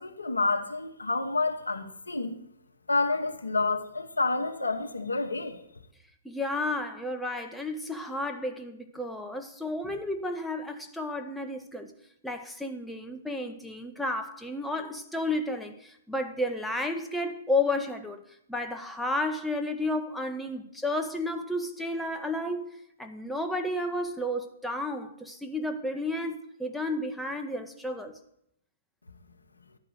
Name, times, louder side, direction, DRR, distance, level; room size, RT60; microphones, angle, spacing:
voice 1, 0.0-2.4 2.9-5.6, left 3 dB, 80° left, 0.9 m, -29 dB
voice 2, 6.2-11.9 12.2-18.2 18.5-28.1, left 1 dB, ahead, 0.7 m, -32 dB
11.5 x 4.8 x 6.4 m
figure-of-eight pair, 120°, 0 cm